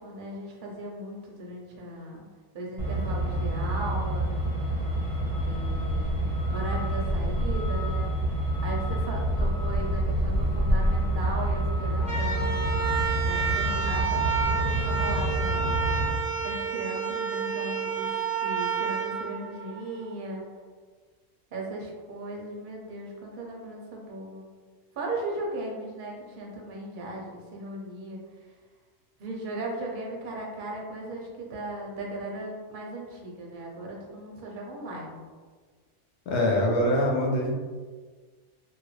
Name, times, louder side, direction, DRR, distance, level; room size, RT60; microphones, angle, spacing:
voice 1, 0.0-2.3 2.5-4.3 5.4-8.1 8.6-12.6 13.2-15.8 16.4-20.4 21.5-24.5 25.0-28.2 29.2-35.2, right 1 dB, 50° right, -2 dB, 0.7 m, -37 dB
Truck, 2.8-16.1, right 1 dB, 25° right, 1.0 m, -27 dB
sound 1, 12.0-20.1, right 6 dB, 35° left, 0.9 m, -30 dB
voice 2, 36.3-37.5, left 1 dB, 65° left, -1 dB, 0.9 m, -24 dB
2.7 x 2.5 x 3.1 m, 1.5 s
omnidirectional pair, 1.3 m